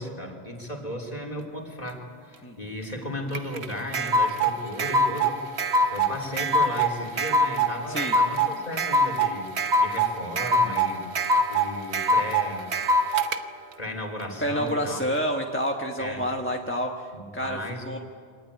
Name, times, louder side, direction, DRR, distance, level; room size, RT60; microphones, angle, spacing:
voice 1, 0.0-5.4 5.9-9.5 9.8-11.1 11.5-12.7 13.8-15.0 16.0-16.2 17.1-17.9, left 1 dB, 35° left, 1 dB, 3.6 m, -35 dB
sound 1, 3.3-13.4, right 1 dB, 70° right, 1.3 m, -23 dB
voice 2, 14.4-17.6 17.8-18.0, equal, 10° left, 1 dB, 1.3 m, -28 dB
25.0 x 19.0 x 9.7 m, 2.1 s
omnidirectional pair, 1.2 m